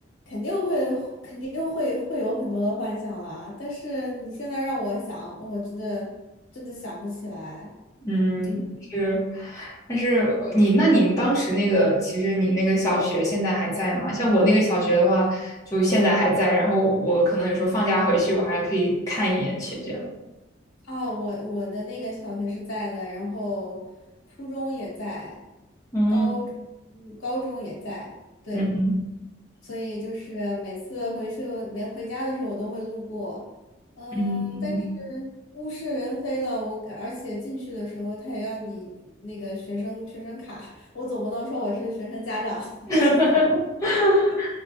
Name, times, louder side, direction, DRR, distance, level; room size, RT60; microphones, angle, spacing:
voice 1, 0.3-6.1 6.5-7.7 8.4-8.6 20.9-23.8 24.4-25.4 26.1-26.5 26.9-28.1 28.4-28.6 29.6-33.4 34.0-35.3 35.5-38.9 39.2-42.7 43.1-43.4, left 1 dB, 85° left, -4 dB, 1.3 m, -31 dB
voice 2, 8.0-8.6 8.9-20.0 25.9-26.3 28.5-28.9 34.1-34.8 42.9-44.5, equal, 15° left, -8 dB, 0.9 m, -22 dB
4.5 x 2.3 x 2.6 m, 1.0 s
head